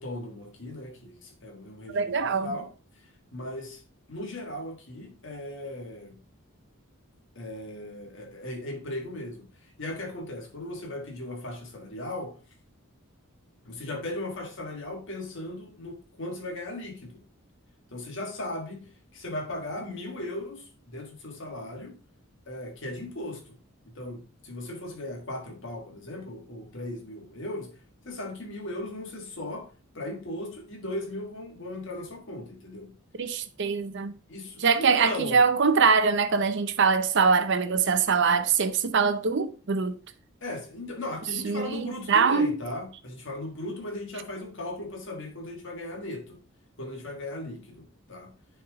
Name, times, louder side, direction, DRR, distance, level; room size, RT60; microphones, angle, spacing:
voice 1, 0.0-3.8 4.1-6.2 7.3-12.4 13.6-17.2 17.9-22.0 22.5-23.6 23.9-27.8 28.0-33.0 34.3-35.4 40.4-46.4 46.8-48.4, left 1 dB, 60° left, 1.6 m, -37 dB
voice 2, 1.9-2.6 33.2-34.2 34.6-40.0 41.4-42.5, right 5 dB, 55° right, 0.6 m, -23 dB
9.5 x 3.5 x 3.5 m
head